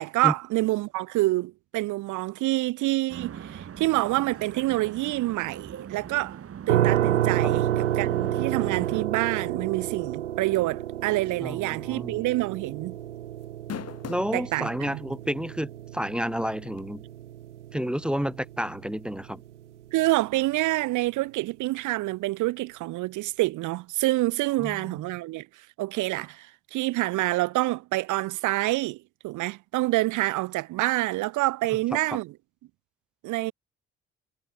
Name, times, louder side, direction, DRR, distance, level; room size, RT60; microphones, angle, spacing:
voice 1, 0.0-6.4 6.7-13.0 14.3-15.0 19.9-25.5 25.8-32.3 33.2-33.5, right 19 dB, 60° right, 1.0 m, -27 dB
sound 1, 3.1-9.0, right 8 dB, 40° right, 1.7 m, -40 dB
sound 2, 6.7-19.5, right 12 dB, 85° right, 1.0 m, -30 dB
voice 2, 11.4-12.2 14.1-17.0 17.7-19.4 24.6-24.9, equal, 5° right, 0.6 m, -30 dB
sound 3, 11.7-12.0 12.3-12.4 13.4-14.4 15.1-15.2 16.8-16.9, left 9 dB, 45° left, 2.2 m, -37 dB
figure-of-eight pair, 50°, 35 cm